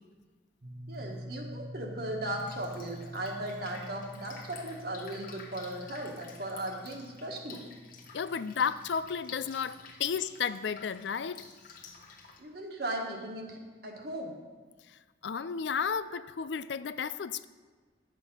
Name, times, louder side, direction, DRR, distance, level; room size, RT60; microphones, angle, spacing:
sound 1, 0.6-10.2, equal, 30° right, 1.0 m, -47 dB
voice 1, 0.9-7.6 12.4-14.4, right 1 dB, 55° right, 1 dB, 1.7 m, -37 dB
Drip, 2.2-12.4, left 5 dB, 50° left, 1.3 m, -51 dB
voice 2, 8.1-11.4 15.2-17.4, left 6 dB, 75° left, 15 dB, 0.4 m, -33 dB
11.0 x 7.6 x 5.5 m, 1.4 s
head